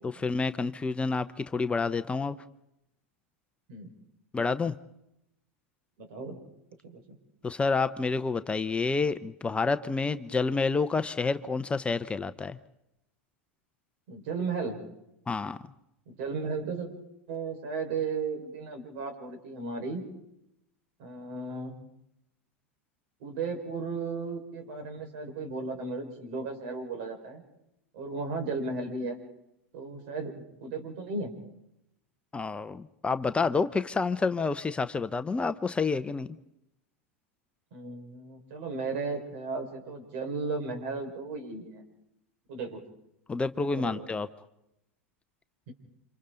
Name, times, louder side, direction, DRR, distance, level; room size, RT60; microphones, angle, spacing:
voice 1, 0.0-2.4 4.3-4.7 7.4-12.6 15.3-15.6 32.3-36.3 43.3-44.3, left 4 dB, 15° left, 11 dB, 0.8 m, -29 dB
voice 2, 6.0-6.4 6.8-7.0 14.1-14.8 16.1-16.9 17.3-20.1 21.0-21.7 23.2-27.4 27.9-29.2 29.7-31.3 37.7-41.8 42.5-42.8 43.8-44.1 45.7-45.8, right 4 dB, 60° right, 4 dB, 5.2 m, -35 dB
29.5 x 26.5 x 4.0 m, 0.83 s
hypercardioid pair, 95°, 7 cm